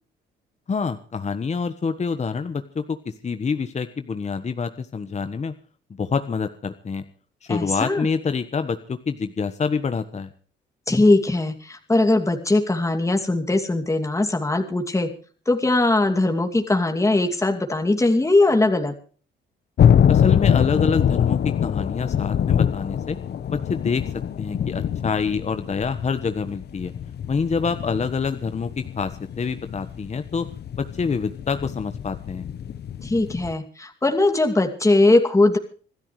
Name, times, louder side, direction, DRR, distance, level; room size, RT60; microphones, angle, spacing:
voice 1, 0.7-5.5 5.9-7.0 7.4-10.3 20.1-23.2 23.5-24.0 24.4-26.9 27.3-30.5 30.8-32.5, left 5 dB, 35° left, 9 dB, 1.3 m, -26 dB
voice 2, 7.5-8.1 10.9-15.1 15.5-18.9 33.0-35.6, left 2 dB, 15° left, 4 dB, 2.5 m, -20 dB
sound 1, 19.8-33.5, left 8 dB, 55° left, 1.0 m, -24 dB
26.5 x 13.0 x 3.2 m, 0.41 s
cardioid pair, 90°, 20 cm